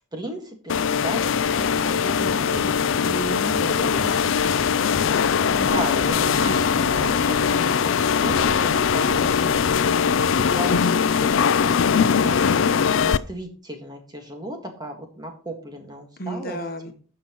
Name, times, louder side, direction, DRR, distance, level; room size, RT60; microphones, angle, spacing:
voice 1, 0.1-2.9 3.6-4.2 5.5-9.7 10.5-16.6 16.8-16.9, equal, 20° right, 3 dB, 1.7 m, -36 dB
sound 1, 0.7-13.2, left 6 dB, 60° left, 0.4 m, -21 dB
sound 2, 1.3-11.5, right 2 dB, 60° right, 2.5 m, -39 dB
voice 2, 3.0-5.0 16.2-16.9, equal, 45° left, 6 dB, 1.1 m, -33 dB
16.0 x 5.7 x 3.0 m, 0.41 s
head